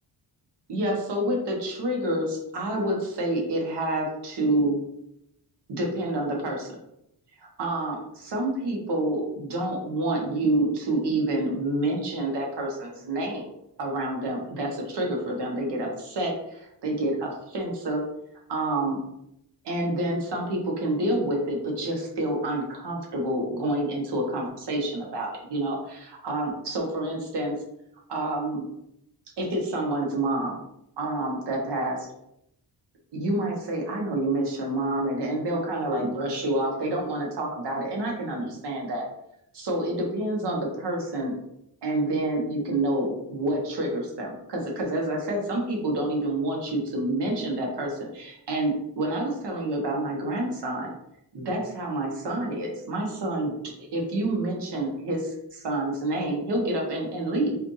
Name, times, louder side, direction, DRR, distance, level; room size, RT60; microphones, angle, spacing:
voice 1, 0.7-4.8 5.7-6.7 7.4-13.5 13.8-18.0 18.5-19.0 19.6-27.5 28.1-28.6 29.4-30.6 31.0-32.1 33.1-39.1 39.5-41.3 41.8-50.9 51.3-53.5 53.9-57.6, right 1 dB, 75° right, -1 dB, 1.3 m, -28 dB
4.9 x 2.6 x 3.2 m, 0.80 s
wide cardioid pair, 160°, 41 cm